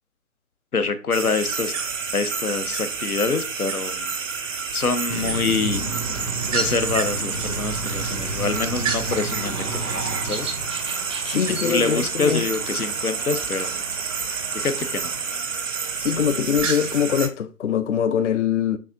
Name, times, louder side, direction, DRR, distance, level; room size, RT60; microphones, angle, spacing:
voice 1, 0.7-1.7 2.1-4.1 4.7-5.8 6.5-10.6 11.6-13.8 14.5-15.1, left 4 dB, 90° left, 0.8 m, -26 dB
sound 1, 1.1-17.3, right 6 dB, 60° right, 0.8 m, -29 dB
sound 2, 5.1-16.6, right 2 dB, 90° right, 1.1 m, -33 dB
sound 3, 5.7-15.2, right 3 dB, 20° right, 0.5 m, -39 dB
voice 2, 11.2-12.4 16.0-18.8, left 8 dB, 55° left, 0.5 m, -23 dB
6.8 x 2.8 x 2.5 m
figure-of-eight pair, 135°, 43 cm